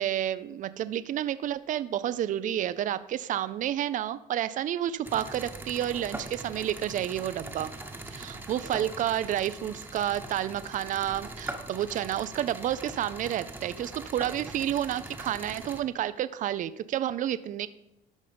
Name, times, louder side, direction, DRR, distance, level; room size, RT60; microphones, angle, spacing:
voice 1, 0.0-7.7 8.1-17.7, right 11 dB, 50° right, 15 dB, 0.5 m, -30 dB
sound 1, 5.0-15.8, right 2 dB, 10° right, 1.2 m, -41 dB
12.5 x 5.3 x 5.1 m, 0.86 s
cardioid pair, 110°, 17 cm